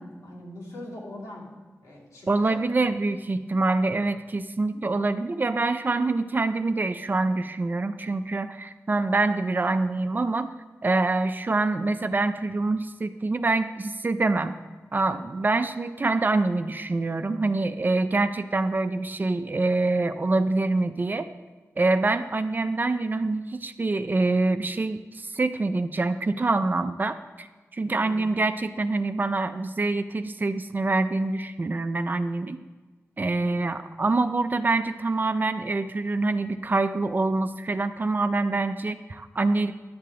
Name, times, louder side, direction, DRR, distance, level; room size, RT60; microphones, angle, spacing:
voice 1, 0.0-1.5 1.8-2.6 27.9-28.3 33.4-33.8, left 1 dB, 90° left, -6 dB, 2.6 m, -41 dB
voice 2, 2.3-10.5 10.8-14.5 14.9-21.3 21.8-27.5 27.7-32.6 33.2-39.7, right 3 dB, 35° right, 10 dB, 0.4 m, -25 dB
11.0 x 6.7 x 3.7 m, 1.3 s
wide cardioid pair, 85°, 5 cm